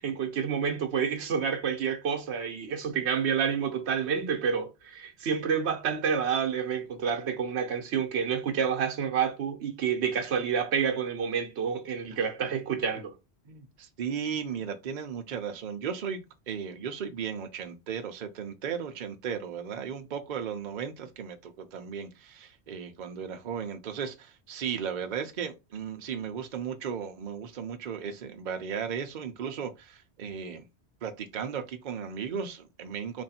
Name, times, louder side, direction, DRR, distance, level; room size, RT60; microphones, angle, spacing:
voice 1, 0.0-13.2, right 7 dB, 85° right, 1.0 m, -29 dB
voice 2, 13.5-30.6 31.0-33.2, right 7 dB, 50° right, 0.7 m, -36 dB
3.1 x 2.6 x 4.1 m
omnidirectional pair, 1.1 m